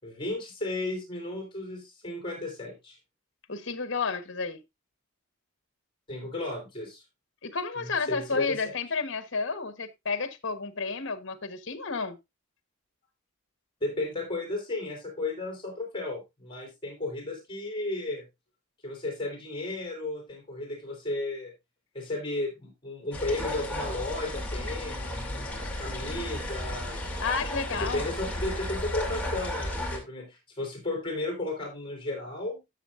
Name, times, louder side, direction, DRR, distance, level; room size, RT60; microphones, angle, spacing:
voice 1, 0.0-3.0 6.1-7.0 7.8-8.7 13.8-18.2 18.8-21.5 21.9-25.4 25.8-27.0 27.7-32.6, left 2 dB, 25° left, 3.7 m, -34 dB
voice 2, 3.5-4.6 7.4-12.2 27.2-28.1, left 4 dB, 60° left, 1.2 m, -31 dB
sound 1, 23.1-30.0, left 1 dB, 5° left, 2.4 m, -34 dB
13.0 x 7.3 x 2.5 m
head